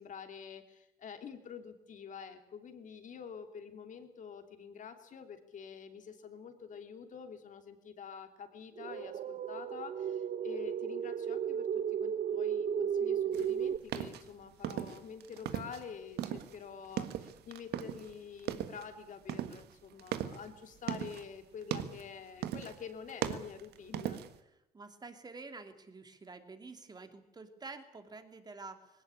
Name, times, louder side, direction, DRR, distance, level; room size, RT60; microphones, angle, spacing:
voice 1, 0.0-24.2, left 6 dB, 50° left, 7 dB, 3.1 m, -47 dB
sound 1, 8.8-13.8, right 8 dB, 45° right, 1.0 m, -34 dB
sound 2, 13.3-15.9 16.1-18.1 18.4-18.9 19.3-21.3 21.6-22.1 22.4-22.8 23.1-24.4, right 11 dB, 75° right, 1.5 m, -38 dB
voice 2, 24.7-29.0, right 3 dB, 25° right, 7 dB, 2.8 m, -49 dB
20.0 x 18.0 x 8.7 m, 0.84 s
cardioid pair, 110°, 17 cm